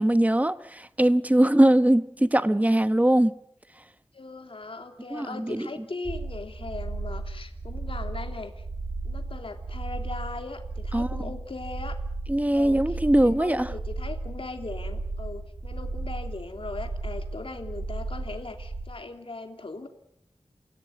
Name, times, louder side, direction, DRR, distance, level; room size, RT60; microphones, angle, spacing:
voice 1, 0.0-3.3 5.1-5.7 10.9-11.1 12.3-13.7, right 1 dB, 15° right, 1.2 m, -21 dB
voice 2, 4.1-8.6 9.0-12.0 12.5-19.9, left 3 dB, 60° left, 3.1 m, -39 dB
sound 1, 6.1-18.8, right 3 dB, 75° right, 7.8 m, -34 dB
29.0 x 16.5 x 9.3 m
wide cardioid pair, 75°, 10 cm